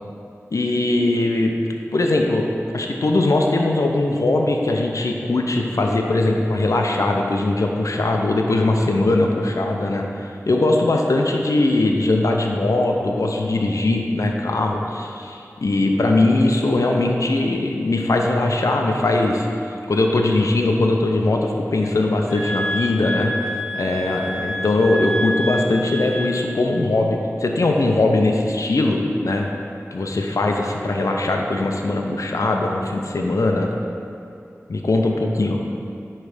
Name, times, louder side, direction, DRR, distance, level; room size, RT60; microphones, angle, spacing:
voice 1, 0.5-1.5 1.9-2.4 2.7-19.5 19.9-23.3 23.7-29.5 29.9-33.7 34.7-35.6, left 2 dB, 80° left, 1 dB, 0.6 m, -20 dB
sound 1, 22.3-26.6, equal, ahead, 0.9 m, -28 dB
9.0 x 3.2 x 5.0 m, 2.6 s
wide cardioid pair, 50°, 5 cm